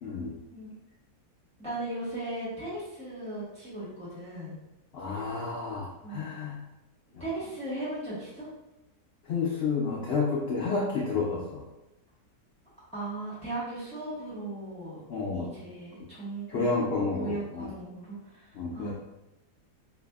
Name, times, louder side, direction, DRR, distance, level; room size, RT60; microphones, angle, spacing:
voice 1, 0.0-0.3 4.9-6.6 7.1-7.2 9.2-11.6 15.1-15.5 16.5-17.7 18.5-18.9, left 4 dB, 85° left, -2 dB, 0.5 m, -30 dB
voice 2, 1.6-4.6 6.0-6.2 7.2-8.5 12.9-15.0 15.3-16.7 17.2-18.9, right 2 dB, 5° left, -10 dB, 1.1 m, -37 dB
4.6 x 2.5 x 2.3 m, 0.98 s
omnidirectional pair, 1.7 m